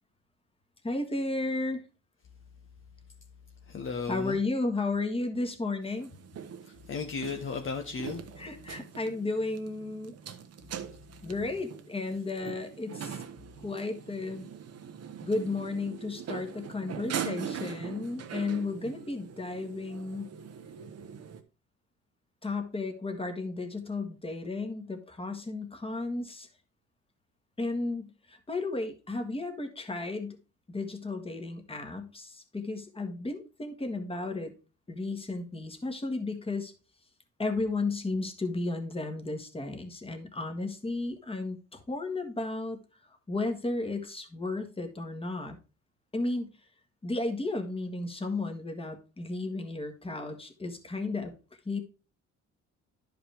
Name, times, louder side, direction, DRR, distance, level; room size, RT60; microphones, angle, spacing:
voice 1, 0.8-1.8 4.1-6.1 8.4-10.1 11.2-13.2 13.6-14.4 15.2-20.3 22.4-26.5 27.6-30.4 30.7-34.5 34.9-36.7 37.4-42.8 43.1-45.6 46.1-46.5 47.0-51.3 51.6-51.8, left 2 dB, 20° left, 5 dB, 1.6 m, -33 dB
voice 2, 3.7-4.4 6.7-8.2, left 5 dB, 45° left, 4 dB, 1.0 m, -35 dB
sound 1, 5.8-21.4, right 8 dB, 55° right, 1.0 m, -42 dB
11.0 x 5.1 x 3.4 m, 0.33 s
cardioid pair, 90°, 30 cm